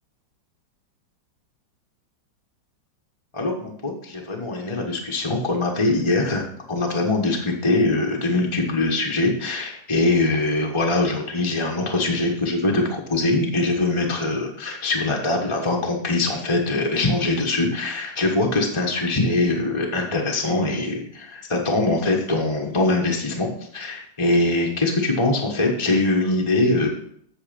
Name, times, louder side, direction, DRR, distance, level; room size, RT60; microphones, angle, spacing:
voice 1, 3.3-26.9, left 2 dB, 20° left, 0 dB, 1.0 m, -22 dB
8.2 x 6.8 x 5.2 m, 0.67 s
omnidirectional pair, 2.0 m